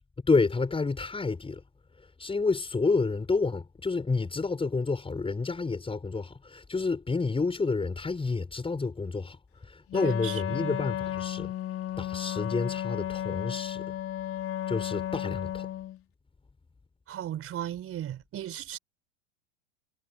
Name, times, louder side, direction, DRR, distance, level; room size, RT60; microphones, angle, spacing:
voice 1, 0.2-1.6 2.0-9.4 9.6-11.5 12.0-14.0 14.7-15.7, left 4 dB, 15° left, 6.1 m, -29 dB
Wind instrument woodwind instrument, 9.9-16.0, left 12 dB, 35° left, 4.1 m, -33 dB
voice 2, 10.0-10.8 17.1-18.8, right 11 dB, 40° right, 4.7 m, -36 dB
hypercardioid pair, 90°, 37 cm